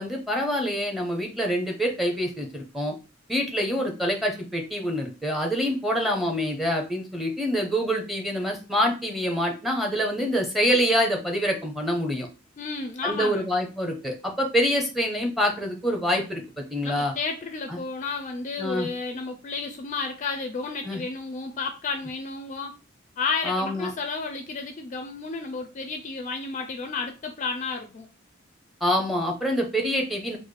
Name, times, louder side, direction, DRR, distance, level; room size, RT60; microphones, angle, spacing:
voice 1, 0.0-2.9 3.3-12.3 13.0-17.1 17.7-17.8 18.6-18.9 20.8-21.0 23.4-23.9 28.8-30.4, equal, ahead, 2 dB, 0.7 m, -26 dB
voice 2, 12.6-13.5 16.8-22.7 23.2-28.1, left 4 dB, 35° left, 6 dB, 0.4 m, -32 dB
4.0 x 2.1 x 3.2 m, 0.30 s
head